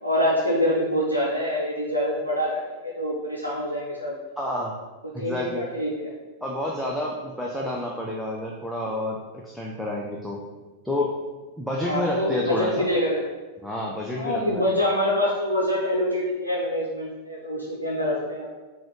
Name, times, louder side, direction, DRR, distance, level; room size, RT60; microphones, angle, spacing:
voice 1, 0.0-4.2 5.2-6.1 11.9-13.2 14.2-18.5, left 1 dB, 90° left, -5 dB, 0.6 m, -25 dB
voice 2, 4.4-4.7 5.1-5.6 6.4-9.2 9.4-10.4 10.8-11.1 11.6-12.9 13.6-14.9, left 1 dB, ahead, -3 dB, 0.5 m, -29 dB
4.0 x 2.4 x 4.5 m, 1.2 s
figure-of-eight pair, 90°, 0 cm